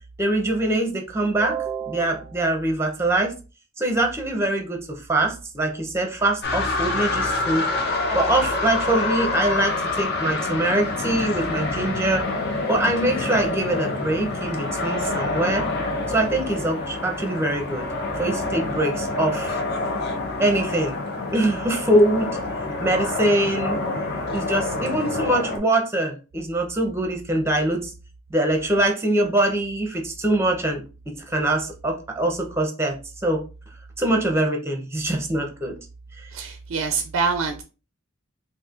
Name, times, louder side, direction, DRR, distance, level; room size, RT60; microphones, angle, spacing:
voice 1, 0.2-3.3 3.8-7.7 8.1-12.3 12.7-15.7 16.1-17.8 18.2-19.6 20.4-21.0 21.3-22.4 22.8-23.8 24.3-27.9 28.3-33.0 33.2-33.4 34.0-35.7 36.2-36.3, right 1 dB, 10° right, 3 dB, 0.6 m, -23 dB
sound 1, 6.4-25.6, left 2 dB, 50° left, 0.7 m, -27 dB
voice 2, 36.3-37.6, right 5 dB, 65° right, 7 dB, 0.4 m, -25 dB
4.1 x 2.6 x 2.4 m, 0.33 s
head